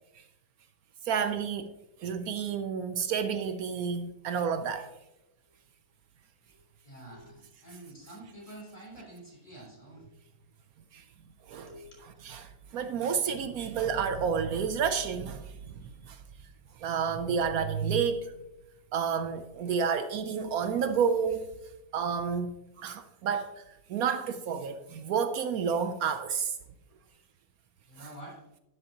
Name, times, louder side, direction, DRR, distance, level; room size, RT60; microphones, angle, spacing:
voice 1, 1.0-1.7 2.0-4.9 10.9-11.0 11.5-11.7 12.2-16.2 16.8-18.3 18.9-21.5 21.9-26.6, right 6 dB, 75° right, 1.1 m, -30 dB
voice 2, 6.8-10.1 11.7-11.8 27.9-28.4, right 1 dB, 25° left, 3.5 m, -48 dB
12.0 x 10.0 x 2.9 m
omnidirectional pair, 1.6 m